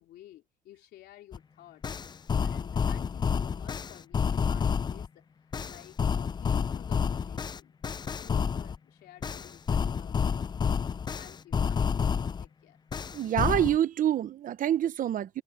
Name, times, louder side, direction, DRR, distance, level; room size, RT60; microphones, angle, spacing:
voice 1, 0.0-1.9 2.4-5.3 5.6-7.8 8.2-10.4 11.2-12.8, left 14 dB, 75° left, 3.7 m, -52 dB
sound 1, 1.3-1.4 1.8-5.1 5.5-8.8 9.2-12.5 12.9-13.8, left 6 dB, 25° left, 0.5 m, -29 dB
voice 2, 13.1-15.4, right 11 dB, 55° right, 0.9 m, -26 dB
cardioid pair, 110°, 17 cm